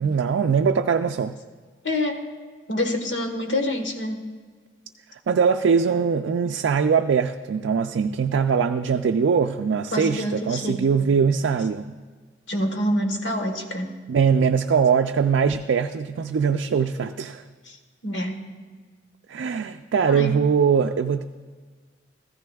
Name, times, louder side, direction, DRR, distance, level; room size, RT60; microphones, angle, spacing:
voice 1, 0.0-1.4 5.3-11.9 14.1-17.4 19.3-21.2, right 6 dB, 85° right, 5 dB, 0.4 m, -21 dB
voice 2, 1.8-2.2 2.7-4.2 9.9-10.9 12.5-13.9 17.6-17.8 18.0-18.4 20.1-20.4, left 1 dB, 90° left, 5 dB, 1.3 m, -26 dB
15.0 x 14.0 x 2.3 m, 1.5 s
head